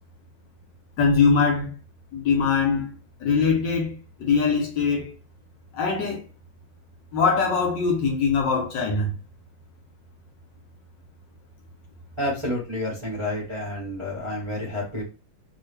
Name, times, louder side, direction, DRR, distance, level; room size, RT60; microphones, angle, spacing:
voice 1, 1.0-1.7 2.1-2.9 3.2-3.9 4.2-5.1 5.7-6.2 7.1-9.1, left 5 dB, 65° left, 1.3 m, -22 dB
voice 2, 12.2-15.0, left 1 dB, 30° right, 0.5 m, -29 dB
3.1 x 2.7 x 3.2 m
omnidirectional pair, 2.4 m